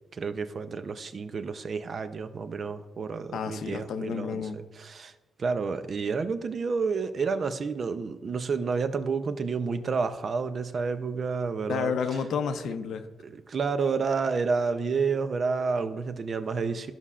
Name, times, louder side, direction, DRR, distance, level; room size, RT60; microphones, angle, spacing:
voice 1, 0.1-5.1 5.4-11.9 13.2-16.9, right 5 dB, 45° right, 0.5 m, -30 dB
voice 2, 3.3-4.6 11.7-13.1, left 6 dB, 85° left, 0.7 m, -30 dB
13.5 x 5.5 x 2.4 m
cardioid pair, 130°, 0 cm